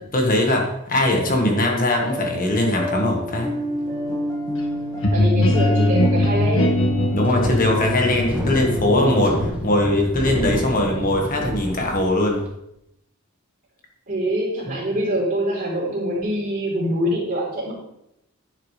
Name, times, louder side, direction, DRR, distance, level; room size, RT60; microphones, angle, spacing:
voice 1, 0.1-3.5 7.1-12.4 14.7-14.8, left 1 dB, 40° left, 1 dB, 1.6 m, -21 dB
sound 1, 2.0-9.5, left 1 dB, 15° left, 1.7 m, -29 dB
sound 2, 5.0-10.7, left 1 dB, 65° left, 1.5 m, -22 dB
voice 2, 5.1-6.8 14.1-17.7, equal, 40° right, -5 dB, 3.7 m, -24 dB
Wind, 6.9-12.5, right 1 dB, 5° right, 1.6 m, -30 dB
10.5 x 8.4 x 3.3 m, 0.81 s
head